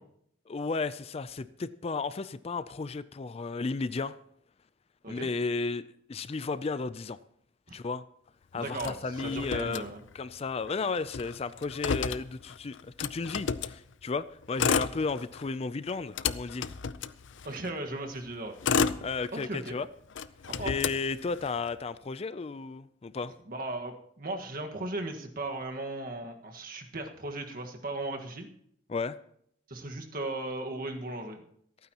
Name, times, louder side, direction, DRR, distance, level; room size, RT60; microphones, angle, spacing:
voice 1, 0.5-4.2 5.1-7.2 7.7-8.0 8.5-9.8 10.1-16.7 19.0-19.9 20.6-23.3 28.9-29.2, left 4 dB, 35° left, 15 dB, 0.4 m, -33 dB
voice 2, 8.5-10.0 17.4-18.6 19.3-19.8 20.5-20.7 23.5-28.5 29.7-31.5, right 2 dB, 50° right, 3 dB, 1.6 m, -37 dB
Motor vehicle (road), 8.8-10.4 10.7-10.8 11.0-13.8 14.4-15.5 15.9-17.7 18.3-19.7 20.1-21.7, left 6 dB, 85° left, 0.5 m, -32 dB
27.5 x 9.4 x 3.0 m, 0.69 s
head